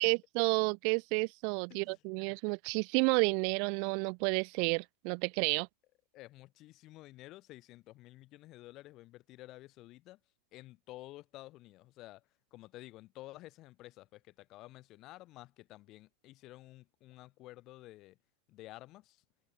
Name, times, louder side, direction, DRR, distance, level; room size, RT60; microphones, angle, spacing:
voice 1, 0.0-5.7, right 40 dB or more, 45° right, 0.5 m, -31 dB
voice 2, 1.7-2.4 6.1-10.2 10.5-12.2 12.5-18.2 18.5-19.2, left 17 dB, 35° left, 1.7 m, -52 dB
figure-of-eight pair, 90°, 0 cm